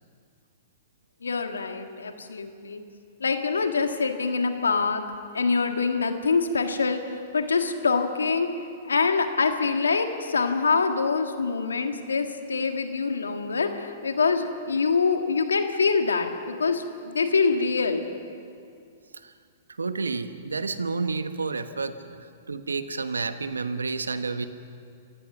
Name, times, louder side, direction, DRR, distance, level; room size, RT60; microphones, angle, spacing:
voice 1, 1.2-2.8 3.2-5.0 5.3-8.5 8.8-16.3 16.6-18.1, left 4 dB, 85° left, 6 dB, 1.7 m, -25 dB
voice 2, 19.8-22.0 22.5-24.5, right 4 dB, 90° right, 11 dB, 1.1 m, -30 dB
27.5 x 16.0 x 6.1 m, 2.4 s
hypercardioid pair, 115°, 0 cm